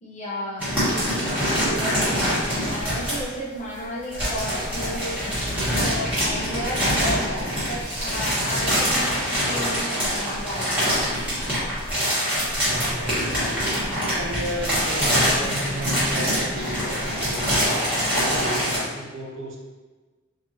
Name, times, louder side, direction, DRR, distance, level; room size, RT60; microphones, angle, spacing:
voice 1, 0.0-5.4 5.7-10.9, equal, 35° left, -5 dB, 0.8 m, -33 dB
sound 1, 0.6-3.3 4.0-18.8, equal, 5° right, 1.4 m, -24 dB
voice 2, 12.6-19.6, right 1 dB, 65° right, -1 dB, 0.7 m, -34 dB
4.4 x 2.5 x 2.8 m, 1.3 s
head